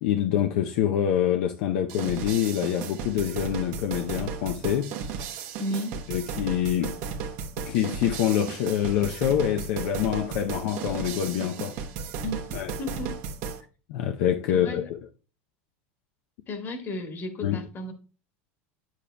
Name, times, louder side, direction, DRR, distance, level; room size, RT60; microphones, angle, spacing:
voice 1, 0.0-4.9 6.1-7.0 7.6-11.8 12.5-12.7 13.9-14.8 17.4-17.6, left 10 dB, 70° left, 0.6 m, -26 dB
sound 1, 1.9-13.6, right 6 dB, 60° right, 1.0 m, -35 dB
voice 2, 5.6-6.0 12.2-13.2 14.5-14.9 16.5-17.9, left 1 dB, 35° left, 1.6 m, -34 dB
8.5 x 7.2 x 2.2 m
supercardioid pair, 120°, 6 cm